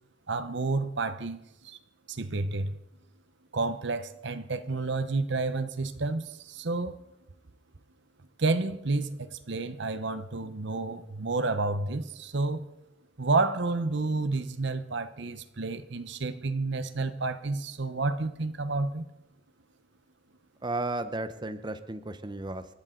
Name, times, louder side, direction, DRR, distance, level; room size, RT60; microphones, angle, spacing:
voice 1, 0.3-1.8 2.1-2.8 3.5-7.0 8.4-12.7 13.2-19.1, right 3 dB, 65° right, 0.9 m, -30 dB
voice 2, 20.6-22.7, right 2 dB, 25° right, 0.8 m, -34 dB
29.0 x 12.0 x 3.9 m
head